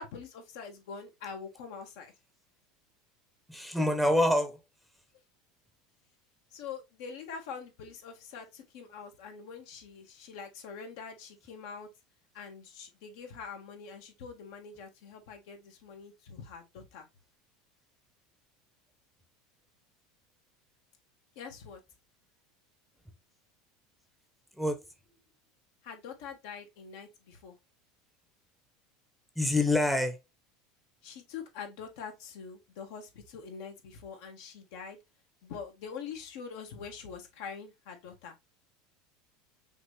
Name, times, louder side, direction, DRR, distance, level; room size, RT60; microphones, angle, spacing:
voice 1, 0.0-2.1 6.5-11.9 12.3-17.1 21.3-21.8 25.8-27.6 31.0-35.0 35.4-38.3, left 6 dB, 70° left, 1.7 m, -44 dB
voice 2, 3.5-4.6 24.6-24.8 29.4-30.2, left 1 dB, ahead, 0.8 m, -26 dB
5.7 x 2.8 x 3.2 m
supercardioid pair, 125°, 0 cm